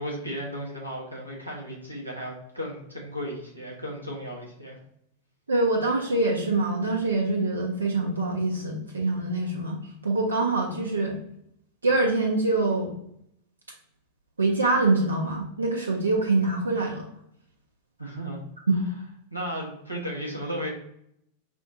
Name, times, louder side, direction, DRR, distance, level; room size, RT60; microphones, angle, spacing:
voice 1, 0.0-4.8 18.0-18.4 18.7-18.8 19.3-20.7, equal, 90° left, -3 dB, 1.0 m, -35 dB
voice 2, 5.5-9.8 10.0-11.2 11.8-12.9 14.4-17.1 18.7-18.8, right 2 dB, 75° right, 0 dB, 0.6 m, -24 dB
5.1 x 2.5 x 2.6 m, 0.72 s
figure-of-eight pair, 90°, 0 cm